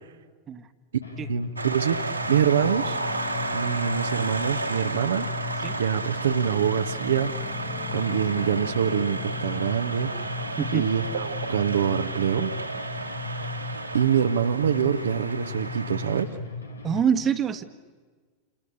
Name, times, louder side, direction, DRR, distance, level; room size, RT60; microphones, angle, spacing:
sound 1, 1.0-17.0, left 3 dB, 80° left, 2.4 m, -36 dB
sound 2, 1.3-16.7, left 7 dB, 45° left, 5.6 m, -44 dB
voice 1, 1.3-3.0 3.5-5.3 5.8-7.3 7.9-10.1 10.7-12.5 13.9-16.3, right 8 dB, 65° right, 6 dB, 1.1 m, -25 dB
sound 3, 1.6-16.2, right 3 dB, 85° right, 2.6 m, -33 dB
voice 2, 10.6-10.9 16.8-17.6, right 7 dB, 25° right, 10 dB, 1.5 m, -25 dB
29.0 x 28.0 x 6.8 m, 1.5 s
figure-of-eight pair, 90°, 0 cm